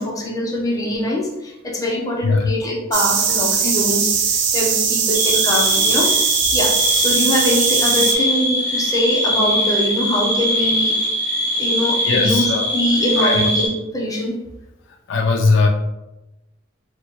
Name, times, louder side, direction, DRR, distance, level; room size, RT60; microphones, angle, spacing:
voice 1, 0.0-11.0 11.4-14.3, equal, 15° left, -2 dB, 0.6 m, -23 dB
sound 1, 2.9-8.1, right 6 dB, 60° right, 0.5 m, -20 dB
sound 2, 5.1-13.7, equal, 10° right, 1.3 m, -21 dB
voice 2, 12.0-12.7 13.2-13.5 15.1-15.7, left 3 dB, 65° left, 3 dB, 0.3 m, -18 dB
4.2 x 2.1 x 2.8 m, 0.97 s
head